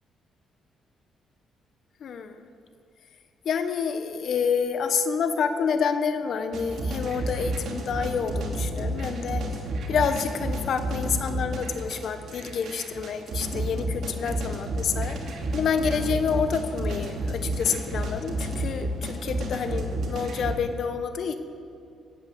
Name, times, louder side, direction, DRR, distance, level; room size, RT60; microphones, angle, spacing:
voice 1, 2.0-2.5 3.4-9.4 9.9-15.2 15.5-21.4, left 6 dB, 65° left, 9 dB, 1.1 m, -28 dB
sound 1, 6.5-20.5, right 1 dB, 70° right, 2.5 m, -31 dB
16.0 x 9.0 x 8.3 m, 2.5 s
cardioid pair, 90°, 0 cm